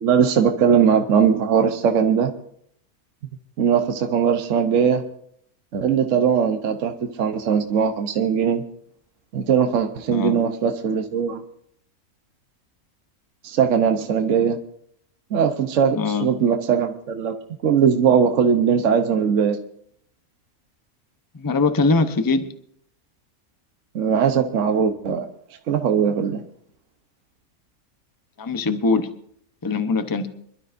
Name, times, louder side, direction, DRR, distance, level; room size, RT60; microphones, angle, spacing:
voice 1, 0.0-2.3 3.6-5.0 5.7-6.9 7.2-8.6 9.3-11.4 13.4-14.6 15.3-17.3 17.6-19.6 23.9-25.3 25.7-26.4, right 7 dB, 60° right, 6 dB, 1.2 m, -20 dB
voice 2, 15.9-16.3 21.3-22.5 28.4-29.1 29.6-30.3, left 3 dB, 20° left, 9 dB, 0.7 m, -22 dB
26.0 x 12.5 x 2.6 m, 0.68 s
omnidirectional pair, 1.5 m